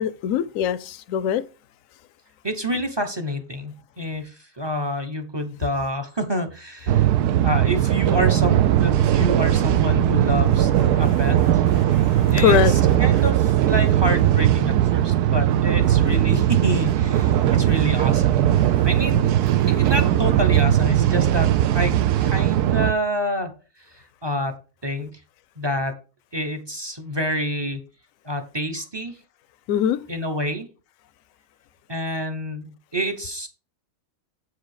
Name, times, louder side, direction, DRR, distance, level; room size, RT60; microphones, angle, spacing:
voice 1, 0.0-1.4 10.9-11.0 11.8-12.7 29.7-30.0, left 9 dB, 65° left, 0.9 m, -22 dB
voice 2, 2.4-7.1 7.4-10.7 11.0-11.6 12.3-18.6 18.8-19.3 19.7-21.9 22.2-23.5 24.2-25.1 25.6-26.0 26.3-27.8 28.2-29.1 30.1-30.7 31.9-33.5, equal, 25° right, 0.7 m, -28 dB
sound 1, 6.9-22.9, right 12 dB, 80° right, 1.1 m, -19 dB
7.9 x 4.8 x 4.8 m
omnidirectional pair, 1.7 m